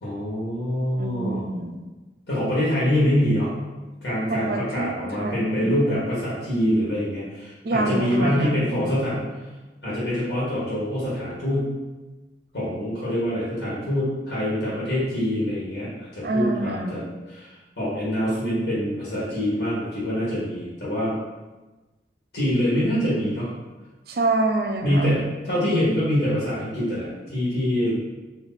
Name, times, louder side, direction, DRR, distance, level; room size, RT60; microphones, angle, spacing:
voice 1, 0.0-1.4 2.3-3.5 4.0-9.2 9.8-11.7 12.5-17.5 17.8-21.2 22.3-23.5 24.8-27.9, equal, 80° left, -9 dB, 1.5 m, -25 dB
voice 2, 1.0-1.8 4.3-5.7 7.6-8.9 16.2-17.1 24.1-25.1, right 2 dB, 60° right, 4 dB, 0.4 m, -26 dB
3.2 x 2.8 x 4.0 m, 1.2 s
head